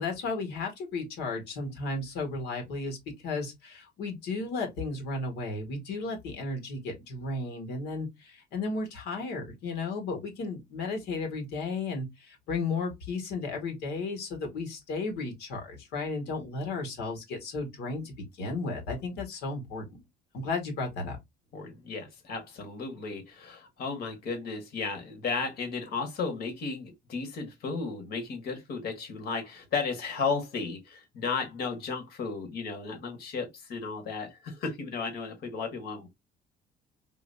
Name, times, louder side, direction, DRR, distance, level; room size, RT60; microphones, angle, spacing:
voice 1, 0.0-3.0 3.2-20.0 20.3-21.2, left 3 dB, 85° left, 1.8 m, -34 dB
voice 2, 21.5-36.1, left 4 dB, 70° left, 1.6 m, -34 dB
3.9 x 2.9 x 2.7 m
cardioid pair, 110°, 17 cm